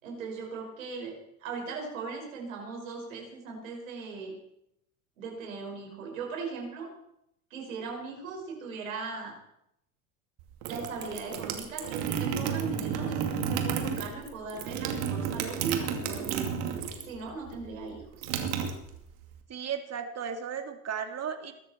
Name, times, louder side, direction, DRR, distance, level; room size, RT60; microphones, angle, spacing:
voice 1, 0.0-4.4 5.2-6.9 7.5-9.4 10.7-16.5 17.0-18.3, right 4 dB, 80° right, 1 dB, 5.5 m, -38 dB
sound 1, 10.4-17.2 17.5-19.3, right 7 dB, 65° right, 2.6 m, -32 dB
voice 2, 19.5-21.5, right 7 dB, 40° right, 6 dB, 2.6 m, -35 dB
22.0 x 12.5 x 4.4 m, 0.79 s
hypercardioid pair, 65°, 39 cm